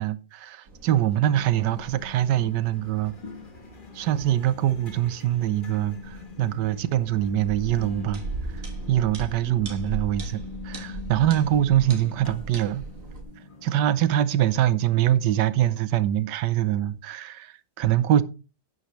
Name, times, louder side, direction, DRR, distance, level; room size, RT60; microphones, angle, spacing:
voice 1, 0.0-3.1 3.9-8.2 8.5-12.8 13.6-18.2, right 12 dB, 75° right, 1.4 m, -24 dB
sound 1, 0.7-13.2, right 3 dB, 50° right, 1.9 m, -40 dB
sound 2, 1.2-15.8, left 4 dB, 30° left, 1.3 m, -44 dB
11.0 x 9.5 x 3.1 m
omnidirectional pair, 1.9 m